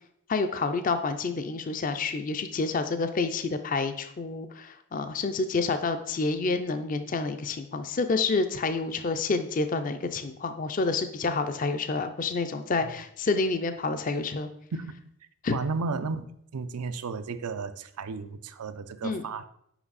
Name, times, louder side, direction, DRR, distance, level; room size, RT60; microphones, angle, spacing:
voice 1, 0.3-14.5 15.4-15.6 19.0-19.3, left 3 dB, 35° left, 9 dB, 0.4 m, -28 dB
voice 2, 15.5-16.3 16.5-19.5, right 4 dB, 90° right, 12 dB, 0.5 m, -33 dB
6.0 x 5.3 x 4.0 m, 0.71 s
head